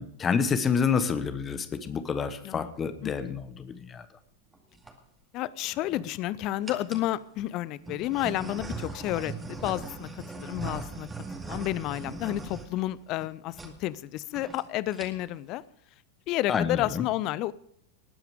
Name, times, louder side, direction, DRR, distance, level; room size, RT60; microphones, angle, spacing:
voice 1, 0.0-4.0 16.5-17.0, left 6 dB, 20° left, 12 dB, 1.1 m, -28 dB
voice 2, 2.4-3.4 5.3-10.1 10.3-11.1 11.4-15.6 16.3-17.5, left 15 dB, 40° left, 20 dB, 0.6 m, -31 dB
sound 1, 4.5-4.9 5.6-6.2 6.6-7.1 7.8-13.3 13.5-13.7 14.0-14.1 14.3-14.6 14.9-15.4, right 3 dB, 10° right, 2.2 m, -39 dB
19.5 x 9.3 x 5.1 m, 0.65 s
figure-of-eight pair, 90°, 0 cm